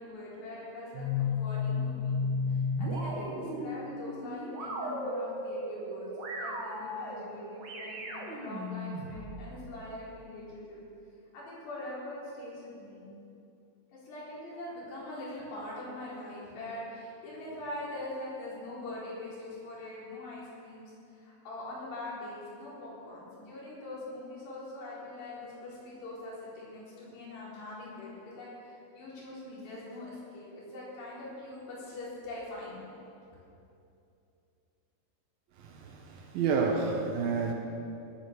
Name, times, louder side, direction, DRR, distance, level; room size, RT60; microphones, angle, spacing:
voice 1, 0.0-2.2 2.5-6.1 6.3-10.8 11.3-13.0 13.9-32.8, left 2 dB, 70° left, -7 dB, 6.5 m, -43 dB
sound 1, 0.9-9.5, left 3 dB, 50° right, 1.3 m, -34 dB
voice 2, 35.6-37.5, right 5 dB, 70° right, 2 dB, 2.5 m, -30 dB
18.0 x 9.3 x 7.0 m, 2.6 s
omnidirectional pair, 5.0 m